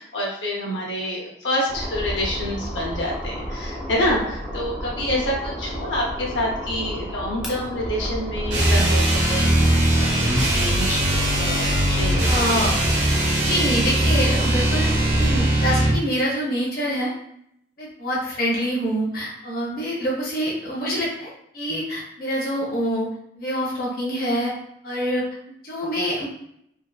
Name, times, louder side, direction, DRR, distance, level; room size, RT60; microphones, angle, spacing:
voice 1, 0.0-11.0 11.4-12.5, left 1 dB, 90° left, -3 dB, 0.7 m, -27 dB
sound 1, 1.7-15.5, equal, 5° right, 0.4 m, -32 dB
sound 2, 8.5-16.0, right 1 dB, 75° right, 0.8 m, -20 dB
voice 2, 12.2-12.7 13.4-17.1 17.8-23.1 23.4-24.5 24.8-25.2 25.6-26.3, equal, 55° left, -5 dB, 0.7 m, -26 dB
2.7 x 2.4 x 2.2 m, 0.72 s
head